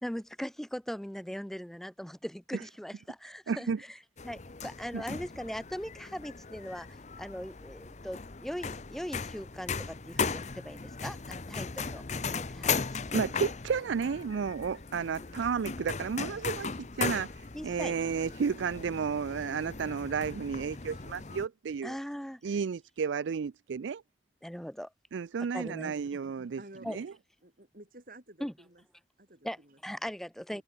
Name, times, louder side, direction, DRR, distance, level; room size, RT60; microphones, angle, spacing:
voice 1, 0.0-4.0 4.2-12.8 13.1-13.2 17.5-18.0 21.8-22.4 24.4-24.9 25.5-25.9 26.8-27.0 28.4-28.5 29.4-30.6, equal, ahead, 0.4 m, -40 dB
voice 2, 3.5-3.8 4.9-5.0 13.1-22.0 22.4-24.0 25.1-26.6 26.9-27.1, right 6 dB, 75° right, 0.4 m, -32 dB
sound 1, 4.2-21.5, left 5 dB, 40° left, 0.8 m, -37 dB
voice 3, 26.6-26.9 27.4-28.8 29.2-29.8 30.5-30.6, right 1 dB, 50° right, 4.1 m, -52 dB
head